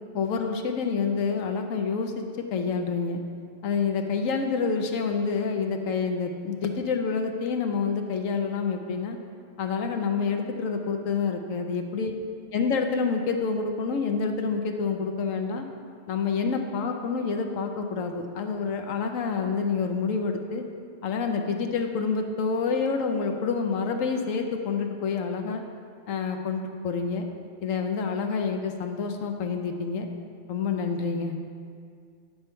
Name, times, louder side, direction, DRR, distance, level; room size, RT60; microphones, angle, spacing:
voice 1, 0.1-2.2 2.5-3.2 3.6-9.2 9.6-12.2 12.5-15.7 16.1-20.6 21.0-25.6 26.1-27.3 27.6-30.1 30.5-31.4, left 5 dB, 90° left, 5 dB, 1.1 m, -28 dB
9.7 x 6.9 x 4.4 m, 2.2 s
omnidirectional pair, 1.3 m